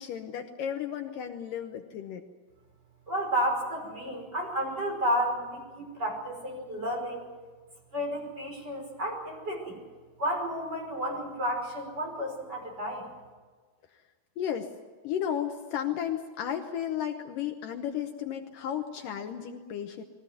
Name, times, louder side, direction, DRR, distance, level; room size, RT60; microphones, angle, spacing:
voice 1, 0.0-2.3 14.4-14.7 15.0-20.0, left 9 dB, 70° left, 5 dB, 2.4 m, -33 dB
voice 2, 3.1-7.2 7.9-9.8 10.2-13.0, equal, 25° right, 0 dB, 5.9 m, -31 dB
21.5 x 16.5 x 9.4 m, 1.4 s
omnidirectional pair, 4.3 m